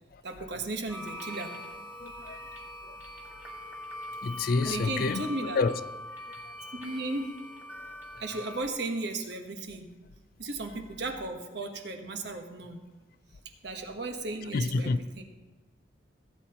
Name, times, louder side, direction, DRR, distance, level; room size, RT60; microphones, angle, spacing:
voice 1, 0.2-1.5 4.6-5.6 6.8-7.3 8.2-9.9 10.4-12.8 13.6-15.2, right 2 dB, 65° right, 1.2 m, -35 dB
sound 1, 0.9-8.7, left 1 dB, 10° right, 1.5 m, -42 dB
voice 2, 2.0-3.0 4.2-5.8 6.2-6.5 14.5-15.0, left 4 dB, 50° left, 0.4 m, -30 dB
16.5 x 8.6 x 3.0 m
head